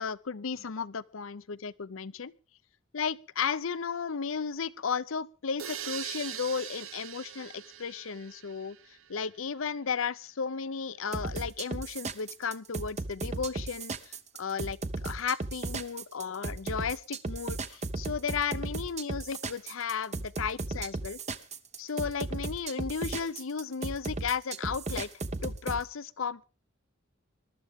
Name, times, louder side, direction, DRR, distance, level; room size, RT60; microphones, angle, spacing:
voice 1, 0.0-2.3 2.9-8.8 9.1-21.2 21.8-25.1 25.4-26.4, left 6 dB, 75° left, 0.7 m, -34 dB
sound 1, 5.6-9.3, right 10 dB, 85° right, 0.8 m, -42 dB
sound 2, 11.1-25.8, right 3 dB, 35° right, 0.9 m, -35 dB
22.0 x 12.5 x 3.6 m
head